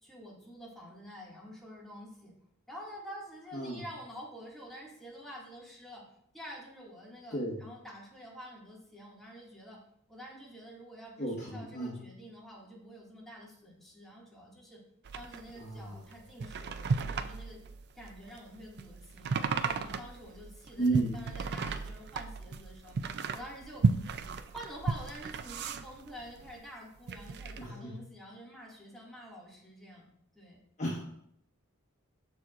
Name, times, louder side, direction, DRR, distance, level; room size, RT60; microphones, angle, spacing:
voice 1, 0.0-2.3 2.7-6.0 6.3-9.8 10.1-14.8 15.1-17.6 17.9-19.3 19.6-23.0 23.3-23.8 24.5-30.1 30.3-30.6, equal, ahead, -5 dB, 2.1 m, -48 dB
voice 2, 11.2-12.0 15.5-16.0 20.8-21.2 27.6-28.0 30.8-31.0, right 2 dB, 35° left, -5 dB, 1.4 m, -33 dB
sound 1, 15.1-26.6 27.0-27.7, right 4 dB, 50° right, 0.4 m, -35 dB
13.0 x 4.6 x 2.5 m, 0.72 s
head